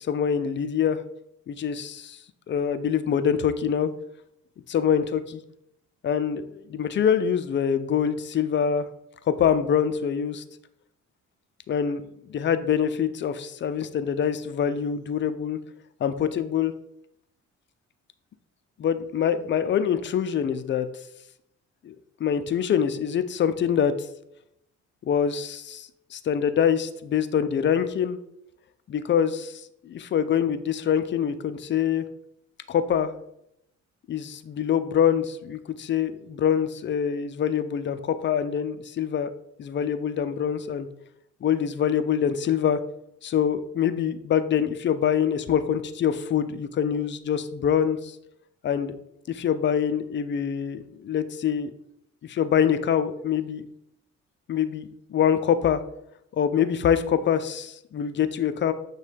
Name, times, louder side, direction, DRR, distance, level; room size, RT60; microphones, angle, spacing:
voice 1, 0.1-1.0 1.5-2.2 2.5-3.9 4.7-5.4 6.0-8.9 9.3-10.4 11.7-12.0 12.3-15.6 16.0-16.7 18.8-20.9 21.8-23.9 25.0-28.2 28.9-32.1 32.7-33.1 34.1-39.3 39.6-40.9 41.4-42.8 43.2-48.2 48.6-49.0 49.3-51.7 52.2-53.6 54.5-55.8 56.3-58.7, left 8 dB, 40° left, 11 dB, 0.4 m, -25 dB
6.2 x 2.3 x 3.4 m, 0.79 s
cardioid pair, 90°, 30 cm